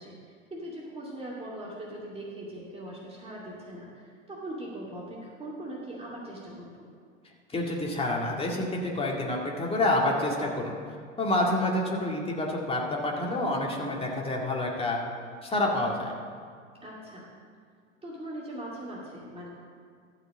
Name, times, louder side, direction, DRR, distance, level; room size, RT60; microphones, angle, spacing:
voice 1, 0.0-6.9 16.8-17.3 18.0-19.5, right 1 dB, 15° right, -5 dB, 2.4 m, -40 dB
voice 2, 7.5-10.8 11.2-15.0 15.4-16.1, left 1 dB, 15° left, -1 dB, 2.1 m, -28 dB
13.5 x 5.0 x 7.4 m, 2.1 s
figure-of-eight pair, 90°, 38 cm